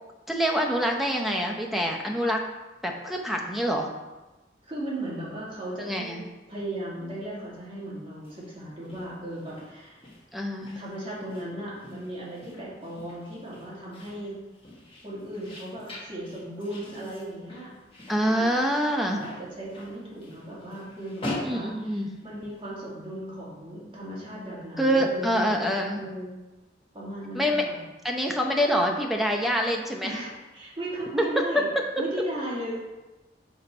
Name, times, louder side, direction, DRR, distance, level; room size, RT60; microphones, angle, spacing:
voice 1, 0.3-2.4 2.8-3.9 5.8-6.2 10.3-10.8 18.1-19.2 21.4-22.1 24.8-26.0 27.3-27.6 28.0-30.1, equal, ahead, 1 dB, 0.7 m, -26 dB
voice 2, 4.6-6.2 6.5-10.0 10.7-14.4 15.0-17.8 18.3-18.9 19.2-25.6 26.0-26.3 26.9-27.8 30.0-31.7 32.0-32.7, right 1 dB, 30° right, -7 dB, 2.1 m, -36 dB
sound 1, 8.1-22.6, left 1 dB, 30° left, 1.3 m, -43 dB
6.0 x 4.7 x 4.4 m, 1.1 s
head